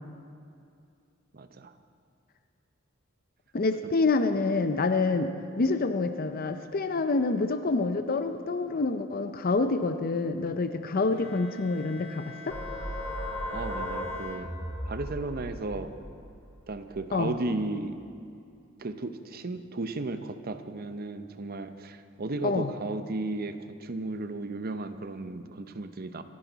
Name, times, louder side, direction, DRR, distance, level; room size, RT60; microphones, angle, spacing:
voice 1, 1.3-1.7 13.5-14.5 14.9-16.0 16.7-18.0 18.8-26.2, right 2 dB, 50° right, 9 dB, 0.7 m, -34 dB
voice 2, 3.5-12.6 17.1-17.3 22.4-22.7, left 3 dB, 45° left, 9 dB, 0.6 m, -27 dB
Bowed string instrument, 11.1-15.1, left 3 dB, 75° left, 1.6 m, -46 dB
sound 1, 12.5-17.8, equal, 10° left, 3.0 m, -37 dB
24.0 x 10.5 x 4.0 m, 2.4 s
head